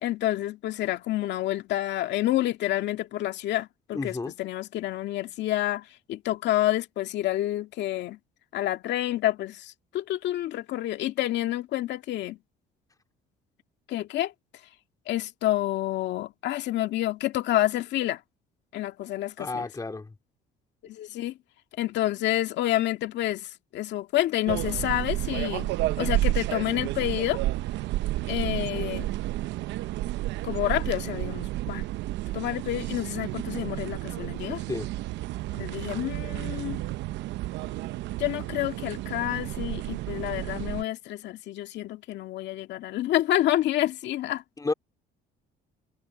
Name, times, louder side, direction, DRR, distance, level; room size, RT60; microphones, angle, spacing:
voice 1, 0.0-8.2 8.5-12.4 13.9-14.3 15.1-18.2 18.7-19.7 20.8-21.4 21.8-25.7 26.0-27.4 28.3-29.1 30.4-31.8 32.3-34.6 35.5-36.8 38.2-44.4, left 14 dB, 70° left, 2.0 m, -28 dB
voice 2, 3.9-4.3 19.4-20.1 30.2-30.3 34.7-34.9 44.6-44.7, left 3 dB, 20° left, 3.3 m, -31 dB
sound 1, 24.5-40.8, right 16 dB, 75° right, 0.8 m, -31 dB
cardioid pair, 100°, 19 cm